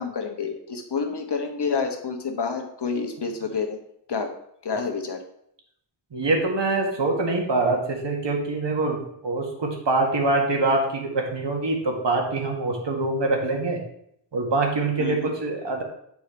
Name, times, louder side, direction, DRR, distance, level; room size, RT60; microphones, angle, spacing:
voice 1, 0.0-3.8 4.1-4.3 4.6-5.2 15.0-15.3, left 5 dB, 65° left, 5 dB, 1.2 m, -28 dB
voice 2, 6.1-13.8 14.3-15.8, right 2 dB, 75° right, 1 dB, 1.7 m, -24 dB
8.5 x 4.6 x 4.4 m, 0.71 s
wide cardioid pair, 100°, 43 cm